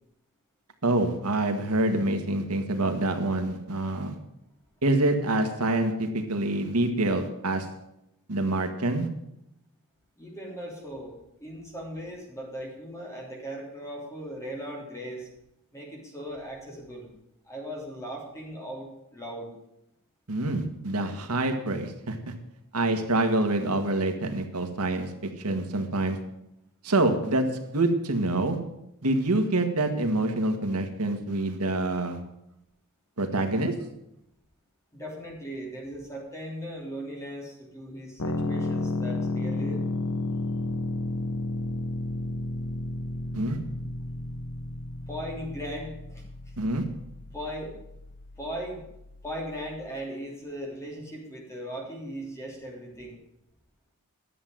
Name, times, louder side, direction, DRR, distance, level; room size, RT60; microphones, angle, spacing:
voice 1, 0.8-4.1 4.8-7.7 8.3-9.1 20.3-22.3 22.7-26.2 26.8-27.4 27.7-28.6 29.0-32.2 33.2-33.7 43.3-43.6 46.6-46.8, right 2 dB, 80° right, 6 dB, 1.6 m, -26 dB
voice 2, 10.2-15.3 15.7-17.1 17.4-19.5 34.9-39.8 45.1-46.2 47.3-47.8 48.4-48.9 49.2-53.2, equal, 15° left, -1 dB, 3.4 m, -38 dB
sound 1, 38.2-49.8, left 2 dB, 75° left, 1.1 m, -33 dB
11.0 x 7.6 x 9.3 m, 0.82 s
head